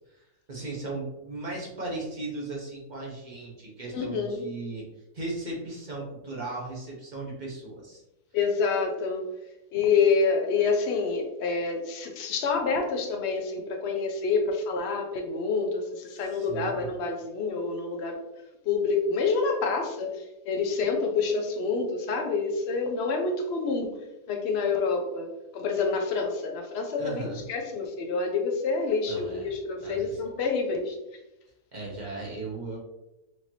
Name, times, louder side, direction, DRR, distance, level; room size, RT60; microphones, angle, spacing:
voice 1, 0.0-4.8 5.1-8.0 16.1-16.9 27.0-27.4 29.1-29.5 29.8-30.2 31.7-32.8, right 2 dB, 35° right, -3 dB, 0.8 m, -37 dB
voice 2, 3.9-4.4 8.3-9.2 9.7-18.2 18.7-23.9 24.3-31.0, left 4 dB, 75° left, 3 dB, 0.6 m, -27 dB
4.4 x 2.8 x 3.0 m, 0.94 s
omnidirectional pair, 1.8 m